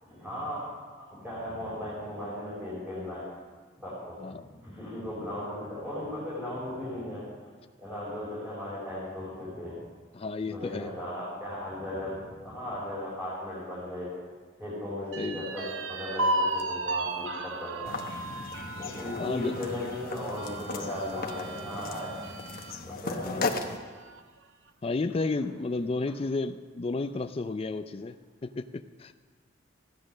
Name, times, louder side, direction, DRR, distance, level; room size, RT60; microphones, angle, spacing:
voice 1, 0.0-0.6 1.0-3.2 3.8-4.3 4.6-7.2 7.8-9.8 10.5-14.1 14.6-17.9 18.6-22.1 23.0-23.6, left 1 dB, 10° right, -10 dB, 4.7 m, -37 dB
voice 2, 10.1-10.9 15.2-15.5 19.2-19.5 23.2-23.5 24.8-28.2 28.4-29.1, left 3 dB, 30° left, 8 dB, 0.4 m, -32 dB
sound 1, 15.1-22.8 23.2-23.3 23.7-24.4, right 2 dB, 80° right, 0.9 m, -35 dB
sound 2, 17.9-23.8, left 3 dB, 50° left, 1.0 m, -37 dB
15.0 x 10.5 x 6.3 m, 1.5 s
head